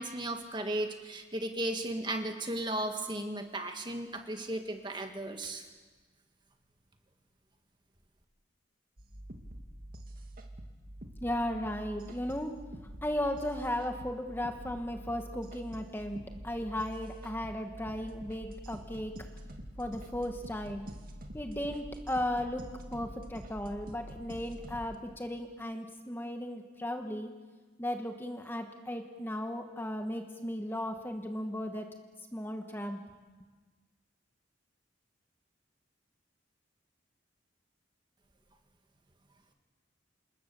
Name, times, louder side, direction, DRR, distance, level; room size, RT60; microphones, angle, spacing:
voice 1, 0.0-5.7, right 1 dB, 25° right, 5 dB, 1.9 m, -35 dB
sound 1, 9.0-25.0, right 1 dB, 50° right, 2.1 m, -46 dB
voice 2, 11.2-12.6 13.0-19.1 19.8-20.9 21.3-27.3 27.8-31.9 32.3-33.0, left 1 dB, 10° left, 4 dB, 1.4 m, -36 dB
27.5 x 21.0 x 7.0 m, 1.3 s
head